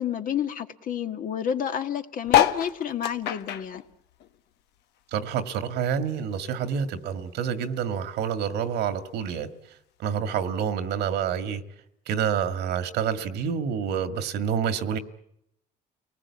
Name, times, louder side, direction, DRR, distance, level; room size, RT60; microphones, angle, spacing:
voice 1, 0.0-3.8, left 9 dB, 55° left, 7 dB, 1.7 m, -30 dB
sound 1, 2.3-5.0 5.4-6.9 7.4-7.5 7.6-7.7 7.9-8.3 9.1-9.2, left 12 dB, 80° left, 1.3 m, -26 dB
voice 2, 5.1-9.5 10.0-11.6 12.1-15.0, right 8 dB, 80° right, 9 dB, 1.9 m, -28 dB
30.0 x 19.5 x 8.5 m, 0.79 s
cardioid pair, 110°, 17 cm